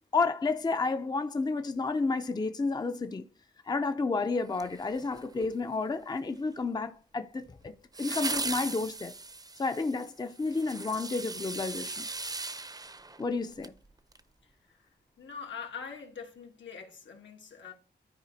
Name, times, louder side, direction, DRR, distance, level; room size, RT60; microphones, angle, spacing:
voice 1, 0.1-3.2 3.7-9.1 9.6-12.0 13.2-13.8, left 3 dB, 20° left, 0.5 m, -31 dB
sound 1, 4.5-5.4 7.9-13.8 14.1-14.2, right 3 dB, 20° right, 0.6 m, -38 dB
voice 2, 15.2-17.7, left 6 dB, 80° left, 2.1 m, -43 dB
13.5 x 4.9 x 2.7 m
wide cardioid pair, 130°, 19 cm